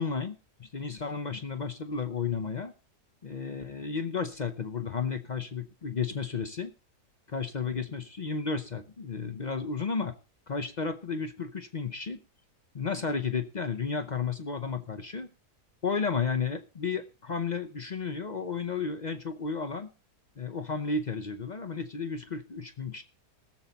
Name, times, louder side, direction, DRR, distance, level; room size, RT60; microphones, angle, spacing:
voice 1, 0.0-2.7 3.2-6.7 7.3-10.1 10.5-12.2 12.7-15.3 15.8-19.9 20.4-23.0, left 5 dB, 45° left, 9 dB, 0.6 m, -33 dB
19.0 x 7.2 x 4.0 m, 0.35 s
omnidirectional pair, 1.7 m